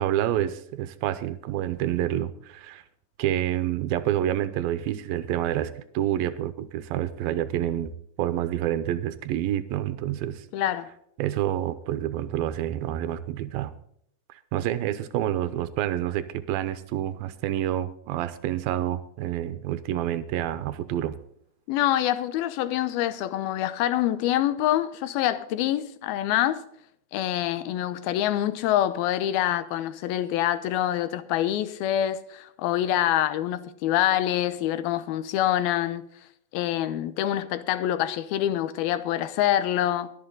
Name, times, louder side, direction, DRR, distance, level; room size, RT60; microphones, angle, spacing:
voice 1, 0.0-2.8 3.2-10.5 11.2-13.7 14.5-21.2, right 12 dB, 85° right, 2.6 m, -28 dB
voice 2, 10.5-10.9 21.7-26.6 27.1-36.1 36.5-40.1, left 12 dB, 85° left, 2.7 m, -26 dB
22.5 x 7.9 x 3.9 m
omnidirectional pair, 4.3 m